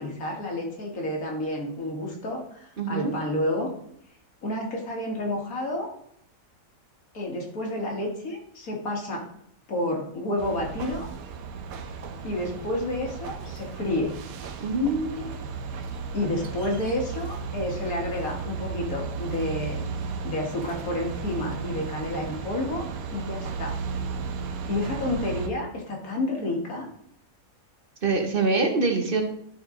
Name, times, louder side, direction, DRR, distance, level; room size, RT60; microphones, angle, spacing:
voice 1, 0.0-3.7 4.4-5.9 7.1-9.3 9.7-11.1 12.2-14.1 16.1-19.8 20.2-22.9 23.1-23.8 24.7-26.9, left 1 dB, 85° left, 0 dB, 2.2 m, -30 dB
voice 2, 2.8-3.1 14.6-15.3 28.0-29.2, right 3 dB, 45° right, 4 dB, 1.2 m, -24 dB
sound 1, 10.4-25.5, right 5 dB, 85° right, 1.2 m, -35 dB
12.0 x 4.3 x 3.8 m, 0.68 s
omnidirectional pair, 1.5 m